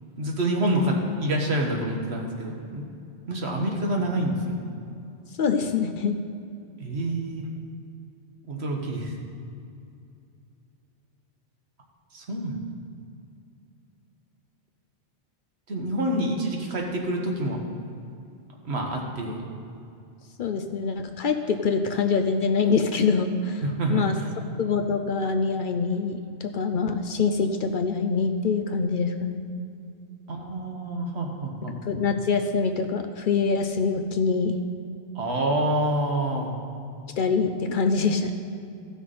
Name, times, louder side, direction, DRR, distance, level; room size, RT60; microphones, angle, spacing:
voice 1, 0.2-2.9 3.3-4.5 6.8-7.5 8.5-9.1 12.1-12.6 15.7-17.6 18.6-19.5 23.6-24.3 30.3-31.7 35.1-36.5, right 1 dB, 75° right, 1 dB, 1.5 m, -27 dB
voice 2, 5.4-6.2 20.4-23.6 23.9-24.2 24.6-29.4 31.8-34.6 37.2-38.3, left 5 dB, 60° left, 6 dB, 0.7 m, -24 dB
15.0 x 6.0 x 4.2 m, 2.6 s
omnidirectional pair, 1.1 m